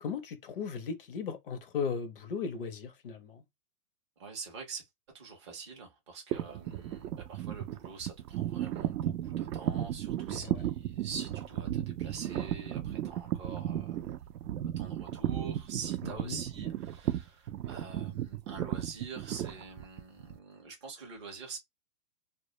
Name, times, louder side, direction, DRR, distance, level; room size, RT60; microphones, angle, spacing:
voice 1, 0.0-3.4 10.3-10.6 16.0-16.4, left 6 dB, 40° left, 0.4 m, -37 dB
voice 2, 4.2-4.9 5.1-14.1 14.6-21.6, right 5 dB, 20° right, 0.4 m, -45 dB
sound 1, 6.3-20.4, right 12 dB, 80° right, 0.5 m, -35 dB
2.1 x 2.0 x 2.9 m
hypercardioid pair, 150°, 47 cm